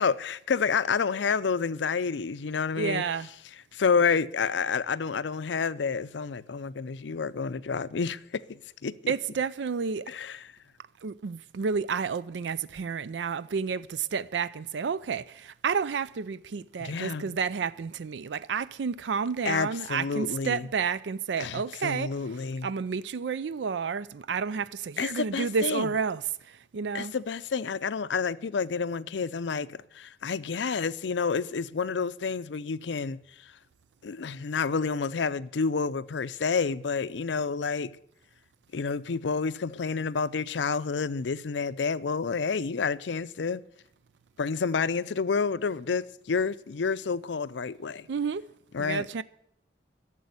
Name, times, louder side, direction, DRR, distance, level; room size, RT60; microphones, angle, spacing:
voice 1, 0.0-3.0 3.7-9.1 10.1-10.5 16.8-17.3 19.4-20.7 21.4-22.7 25.0-25.9 26.9-33.5 34.0-38.0 38.7-43.6 44.4-48.1 48.7-49.1, left 5 dB, 90° left, 0.5 m, -29 dB
voice 2, 2.7-3.3 9.1-10.1 11.0-22.2 22.6-27.1 48.1-48.5 48.8-49.2, right 5 dB, 85° right, 0.4 m, -30 dB
12.0 x 7.5 x 9.5 m
head